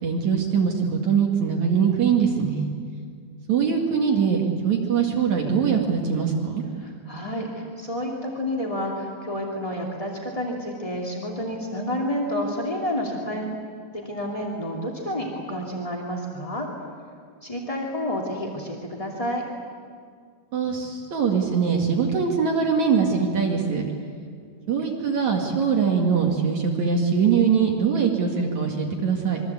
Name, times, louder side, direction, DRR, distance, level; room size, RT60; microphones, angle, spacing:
voice 1, 0.0-2.7 3.5-6.6 20.5-23.8 24.7-29.4, right 6 dB, 50° right, 1 dB, 2.5 m, -22 dB
voice 2, 6.8-13.5 14.0-16.7 17.4-19.5, equal, 25° left, -1 dB, 0.7 m, -29 dB
26.0 x 23.0 x 8.4 m, 2.1 s
omnidirectional pair, 5.4 m